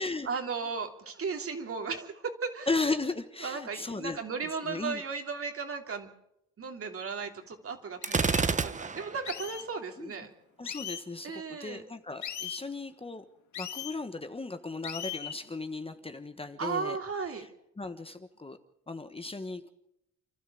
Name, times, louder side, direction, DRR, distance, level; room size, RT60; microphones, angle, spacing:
voice 1, 0.2-2.1 2.4-2.7 3.4-6.1 6.6-10.3 11.2-11.8 16.6-17.4, right 5 dB, 50° right, 5 dB, 3.2 m, -35 dB
voice 2, 2.7-4.2 4.6-5.0 10.0-10.1 10.6-13.3 13.6-17.0 17.3-17.5 17.8-18.6 18.9-19.7, left 3 dB, 20° left, 9 dB, 1.3 m, -36 dB
sound 1, 7.5-7.6 8.0-8.4 9.3-9.7 10.7-11.0 12.2-12.6 13.5-13.9 14.8-15.4, left 9 dB, 70° left, 2.0 m, -38 dB
Gunshot gunfire, 8.0-9.3, right 4 dB, 25° right, 1.0 m, -28 dB
29.0 x 12.5 x 8.5 m, 0.81 s
cardioid pair, 90°, 30 cm